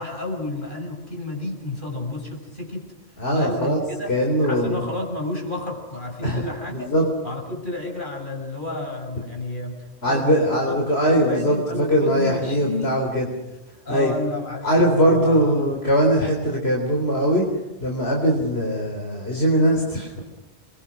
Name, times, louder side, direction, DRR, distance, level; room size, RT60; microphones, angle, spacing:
voice 1, 0.0-2.9 3.3-4.2 4.4-6.9 7.2-12.9 13.8-15.7, left 2 dB, 50° left, 1 dB, 6.7 m, -31 dB
voice 2, 3.2-3.8 4.1-4.9 6.2-6.5 6.7-7.1 10.0-13.3 13.9-14.1 14.6-17.4 17.8-20.1, equal, 70° left, 0 dB, 4.1 m, -21 dB
29.0 x 22.5 x 6.4 m, 1.1 s
omnidirectional pair, 1.1 m